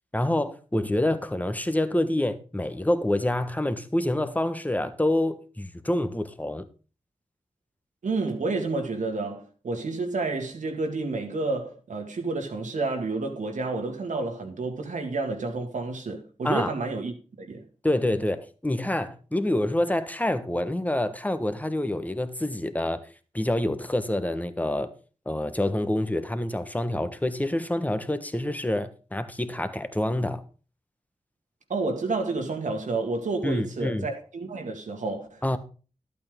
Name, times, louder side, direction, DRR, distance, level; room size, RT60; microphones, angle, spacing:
voice 1, 0.1-6.6 16.4-16.7 17.8-23.0 23.3-24.9 25.2-30.4 33.4-34.1 35.4-35.6, left 1 dB, 10° left, 1.3 m, -27 dB
voice 2, 8.0-17.7 31.7-35.6, right 3 dB, 80° right, 2.1 m, -30 dB
12.0 x 8.6 x 3.7 m
cardioid pair, 40°, 13 cm